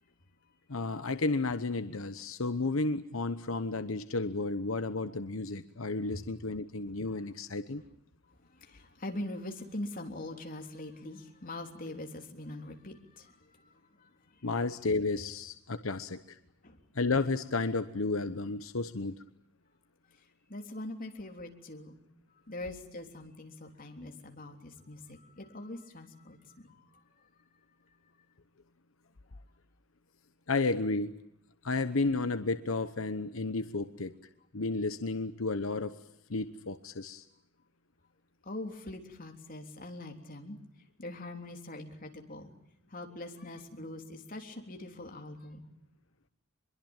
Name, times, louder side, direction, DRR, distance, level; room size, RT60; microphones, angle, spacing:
voice 1, 0.7-7.8 14.4-16.4 16.9-19.1 30.5-31.2 31.6-34.1 34.5-36.0 36.3-37.2, left 3 dB, 90° left, 10 dB, 1.1 m, -32 dB
voice 2, 8.5-13.7 14.0-14.1 16.6-16.8 20.5-22.0 22.5-27.0 29.3-29.4 38.4-40.6 41.0-42.5 42.9-45.7, left 1 dB, 45° left, 3 dB, 3.4 m, -43 dB
24.5 x 22.5 x 9.0 m, 0.72 s
head